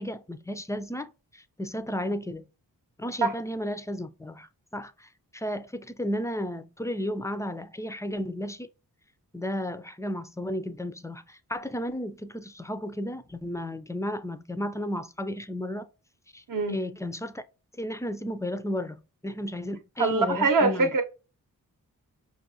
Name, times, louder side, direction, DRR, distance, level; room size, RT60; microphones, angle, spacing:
voice 1, 0.0-2.4 3.0-8.7 9.3-15.9 16.3-17.4 17.7-20.9, equal, 10° left, 0.3 m, -33 dB
voice 2, 16.5-16.8 20.0-21.0, right 3 dB, 60° right, 0.8 m, -23 dB
5.3 x 2.6 x 2.6 m
cardioid pair, 50°, 37 cm